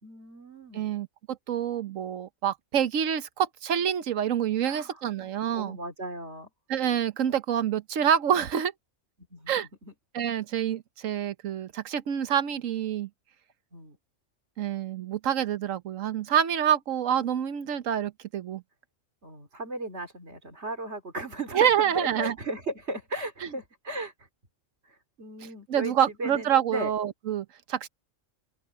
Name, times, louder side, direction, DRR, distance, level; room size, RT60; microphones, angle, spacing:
voice 1, 0.0-1.0 4.6-6.5 9.3-9.9 13.7-14.0 19.2-24.3 24.8-26.9, right 1 dB, 60° right, 3.3 m, -37 dB
voice 2, 0.7-5.8 6.7-8.7 9.5-9.7 10.1-13.1 14.6-18.6 21.5-22.3 23.4-23.5 25.7-27.9, right 9 dB, 85° right, 1.3 m, -27 dB
open air
omnidirectional pair, 1.3 m